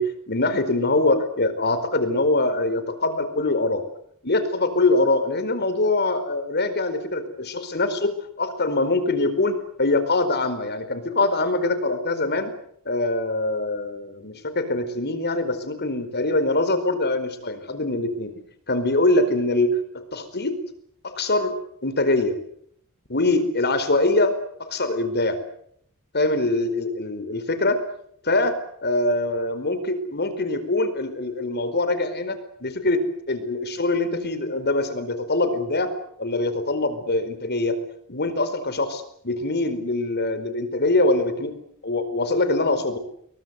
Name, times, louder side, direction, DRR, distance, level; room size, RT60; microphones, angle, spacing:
voice 1, 0.0-3.8 4.2-12.5 12.8-18.3 18.7-20.5 21.0-21.5 21.8-22.4 23.1-24.3 24.6-25.4 26.1-27.8 28.2-28.6 28.8-35.9 36.2-37.8 38.1-41.5 41.8-43.0, left 2 dB, 50° left, 11 dB, 4.6 m, -23 dB
29.0 x 22.5 x 8.2 m, 0.69 s
head